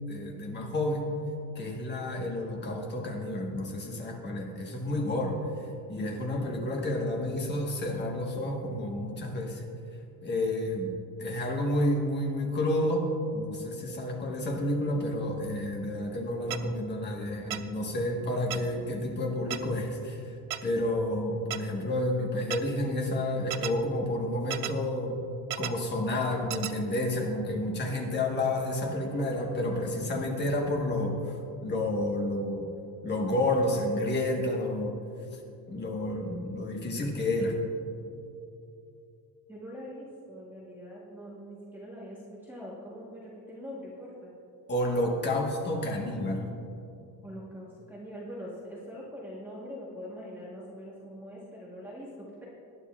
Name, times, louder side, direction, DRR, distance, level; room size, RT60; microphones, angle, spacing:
voice 1, 0.1-1.1 1.5-5.4 5.9-9.6 10.2-20.2 20.6-25.2 25.6-31.3 31.6-32.7 33.0-34.9 35.3-35.4 35.7-37.6 44.7-46.5, left 1 dB, 25° left, 0 dB, 1.3 m, -30 dB
sound 1, 16.5-16.6 17.5-17.6 18.5-18.6 19.5-19.6 20.5-20.6 21.5-21.6 22.5-22.6 23.5-23.7 24.5-24.7 25.5-25.7 26.5-26.7, right 13 dB, 50° right, 0.5 m, -32 dB
voice 2, 39.5-44.3 47.2-52.4, equal, 5° right, -7 dB, 1.2 m, -43 dB
19.5 x 9.7 x 2.4 m, 2.7 s
cardioid pair, 175°, 41 cm